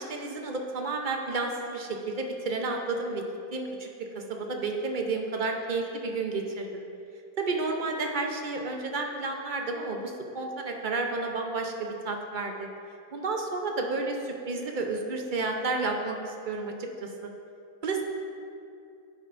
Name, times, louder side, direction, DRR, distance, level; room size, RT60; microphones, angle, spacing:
voice 1, 0.0-3.2 3.5-6.8 7.4-12.7 13.1-17.3 17.8-18.0, right 3 dB, 40° right, 2 dB, 0.8 m, -31 dB
11.0 x 9.7 x 2.6 m, 2.5 s
omnidirectional pair, 1.6 m